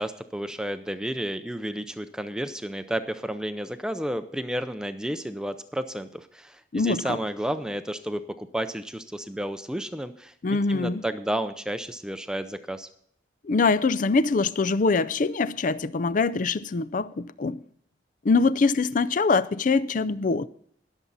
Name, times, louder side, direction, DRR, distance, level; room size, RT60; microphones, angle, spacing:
voice 1, 0.0-12.9, right 1 dB, 5° right, 0.5 m, -32 dB
voice 2, 6.7-7.2 10.4-11.0 13.4-17.6 18.2-20.5, left 4 dB, 45° left, 0.5 m, -23 dB
21.0 x 7.2 x 4.0 m
head